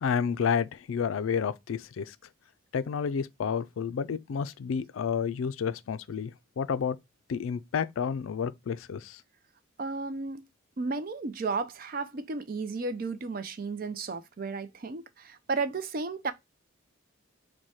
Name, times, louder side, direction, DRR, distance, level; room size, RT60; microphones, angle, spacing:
voice 1, 0.0-2.1 2.7-7.0 7.3-9.2, left 6 dB, 75° left, 0.4 m, -30 dB
voice 2, 9.8-10.5 10.8-16.3, right 4 dB, 45° right, 0.4 m, -33 dB
4.7 x 2.2 x 4.0 m
head